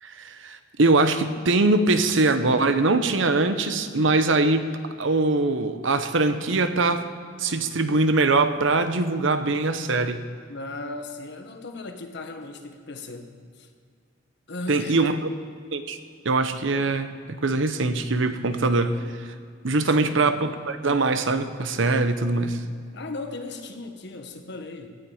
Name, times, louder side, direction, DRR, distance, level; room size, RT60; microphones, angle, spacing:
voice 1, 0.0-7.0 7.4-10.2 14.7-15.2 15.7-16.0 16.2-19.3 19.6-22.6, right 3 dB, 70° right, 9 dB, 0.9 m, -22 dB
voice 2, 10.5-13.7 14.5-15.0 19.8-20.4 22.9-24.9, left 2 dB, 65° left, 6 dB, 1.3 m, -37 dB
16.5 x 11.0 x 5.0 m, 2.1 s
head